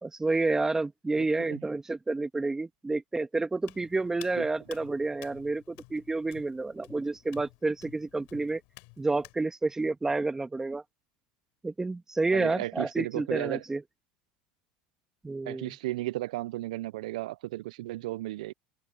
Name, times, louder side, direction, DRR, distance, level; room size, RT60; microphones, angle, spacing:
voice 1, 0.0-8.6 9.0-10.8 11.6-13.8 15.2-15.7, right 3 dB, 15° right, 1.6 m, -30 dB
voice 2, 1.2-1.6 4.4-4.5 12.3-13.6 15.4-18.5, right 17 dB, 80° right, 0.5 m, -34 dB
Hands, 3.6-9.4, left 30 dB, 70° left, 3.6 m, -53 dB
supercardioid pair, 100°, 4 cm